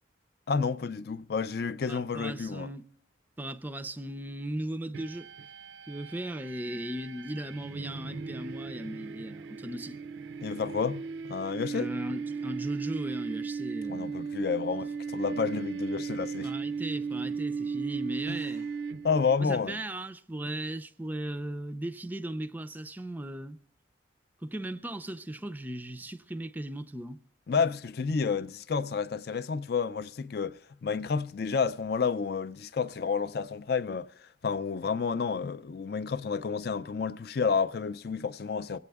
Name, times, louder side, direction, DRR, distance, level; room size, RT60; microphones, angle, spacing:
voice 1, 0.5-2.7 10.4-11.0 11.3-11.9 13.9-16.5 19.0-19.8 27.5-34.1 34.4-38.8, left 5 dB, 55° left, 0.4 m, -30 dB
voice 2, 1.9-2.9 3.4-5.3 5.9-10.0 11.7-14.3 15.3-15.4 16.4-18.7 19.4-23.6 24.4-27.2, right 1 dB, 10° right, 0.4 m, -37 dB
sound 1, 4.9-19.4, right 5 dB, 75° right, 0.4 m, -36 dB
24.5 x 8.5 x 3.5 m
head